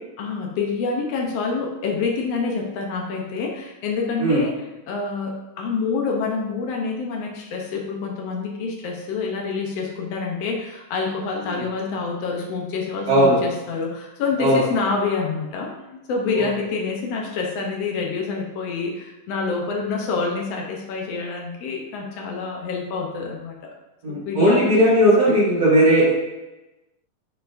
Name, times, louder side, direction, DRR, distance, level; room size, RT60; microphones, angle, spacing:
voice 1, 0.2-4.5 4.9-23.7 24.1-25.5, left 4 dB, 85° left, 0 dB, 1.4 m, -27 dB
voice 2, 13.1-13.4 14.4-14.6 16.4-16.5 24.0-26.1, right 1 dB, 40° right, -11 dB, 2.2 m, -17 dB
11.0 x 4.6 x 2.6 m, 1.0 s
omnidirectional pair, 4.0 m